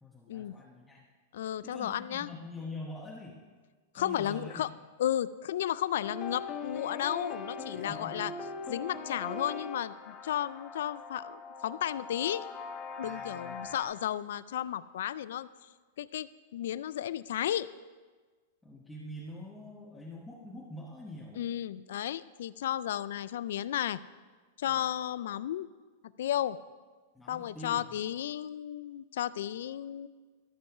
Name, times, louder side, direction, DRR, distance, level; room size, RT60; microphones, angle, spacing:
voice 1, 0.0-1.0 1.6-3.4 3.9-4.7 7.7-8.4 13.0-13.8 18.6-21.5 24.6-24.9 27.1-27.9, left 1 dB, 5° left, -5 dB, 1.1 m, -45 dB
voice 2, 1.3-2.3 3.9-4.7 5.0-8.3 8.7-12.5 13.0-15.5 16.0-17.7 21.4-24.0 24.6-25.7 26.2-26.6 27.3-30.1, left 11 dB, 75° left, 17 dB, 0.3 m, -33 dB
sound 1, 6.0-13.8, left 4 dB, 30° left, 1.0 m, -41 dB
13.5 x 5.4 x 4.8 m, 1.4 s
supercardioid pair, 140°, 0 cm